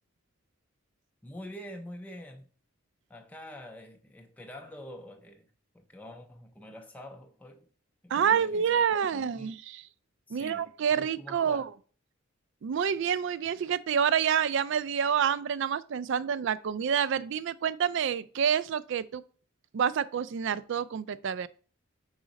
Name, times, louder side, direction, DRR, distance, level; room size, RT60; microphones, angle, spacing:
voice 1, 1.2-2.5 3.1-5.5 5.7-7.7 8.0-9.5 10.3-10.7 10.9-11.7, equal, 5° left, 0.5 m, -46 dB
voice 2, 8.1-9.8 10.3-11.6 12.6-19.2 19.7-21.5, right 7 dB, 60° right, 0.3 m, -28 dB
4.8 x 3.8 x 5.1 m
head